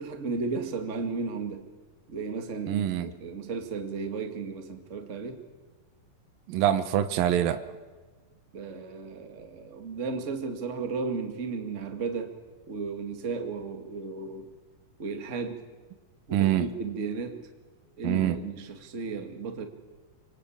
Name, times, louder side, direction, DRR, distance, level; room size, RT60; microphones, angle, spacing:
voice 1, 0.0-1.6 2.1-5.4 8.5-12.4 12.7-14.5 15.0-15.6 16.3-17.5 18.0-19.7, right 4 dB, 25° right, 5 dB, 1.7 m, -34 dB
voice 2, 2.7-3.1 6.5-7.6 16.3-16.7 18.0-18.4, right 11 dB, 80° right, 10 dB, 2.8 m, -25 dB
25.5 x 22.5 x 8.6 m, 1.3 s
omnidirectional pair, 4.1 m